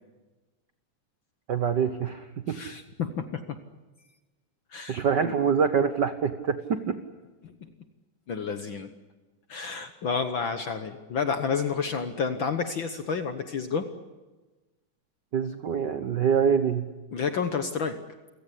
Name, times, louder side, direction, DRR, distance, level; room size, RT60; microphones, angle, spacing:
voice 1, 1.5-2.6 4.9-7.0 15.3-16.8, right 7 dB, 65° right, 9 dB, 1.0 m, -25 dB
voice 2, 2.5-3.4 4.7-5.3 7.4-7.5 8.3-8.9 9.5-13.9 17.1-18.0, left 5 dB, 55° left, 8 dB, 1.4 m, -30 dB
28.5 x 17.0 x 10.0 m, 1.2 s
omnidirectional pair, 3.4 m